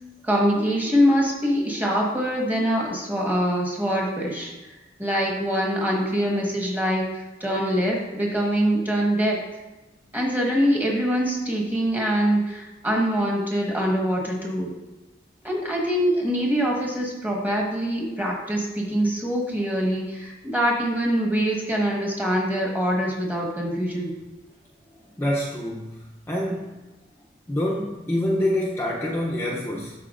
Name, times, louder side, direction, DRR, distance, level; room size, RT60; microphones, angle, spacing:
voice 1, 0.2-4.5 5.0-7.0 7.4-9.4 10.1-14.7 15.4-24.1, equal, 10° right, -2 dB, 1.3 m, -24 dB
voice 2, 25.2-26.0 26.3-26.7 27.5-29.9, left 1 dB, 15° left, -4 dB, 0.6 m, -26 dB
11.5 x 4.4 x 2.5 m, 1.1 s
head